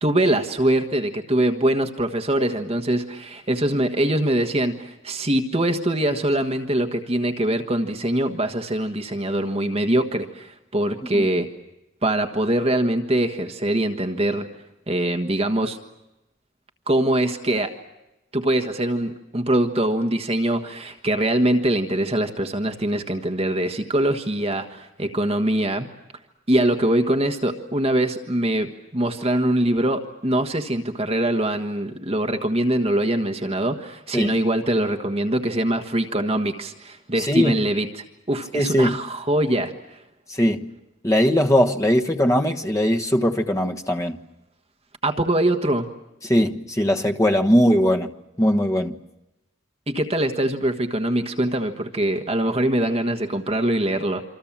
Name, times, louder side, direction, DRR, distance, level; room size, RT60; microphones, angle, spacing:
voice 1, 0.0-11.5 12.0-14.5 14.9-15.8 16.9-17.7 18.3-25.9 26.5-40.0 45.0-45.9 49.9-54.2, right 1 dB, 30° right, 1.4 m, -23 dB
voice 2, 37.2-37.6 38.5-39.0 40.3-40.7 41.0-44.2 46.2-48.1 48.4-49.0, equal, 15° left, 1.3 m, -20 dB
27.5 x 26.0 x 7.4 m
head